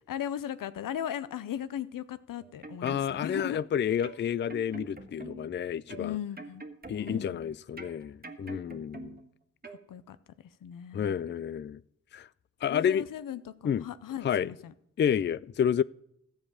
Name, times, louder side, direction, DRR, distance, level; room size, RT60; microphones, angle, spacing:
voice 1, 0.1-3.6 6.0-6.6 6.9-7.5 9.7-10.2 10.4-11.2 12.6-14.7, left 10 dB, 85° left, 0.6 m, -37 dB
sound 1, 2.4-3.7 4.0-5.6 5.9-7.4 7.8-9.3 9.6-9.8, right 3 dB, 30° right, 1.5 m, -45 dB
voice 2, 2.8-6.2 6.9-9.2 10.9-11.8 12.1-12.3 12.6-13.0 13.6-13.8 14.2-14.5 15.0-15.8, left 8 dB, 35° left, 0.4 m, -30 dB
13.5 x 4.9 x 8.8 m
cardioid pair, 45°, 32 cm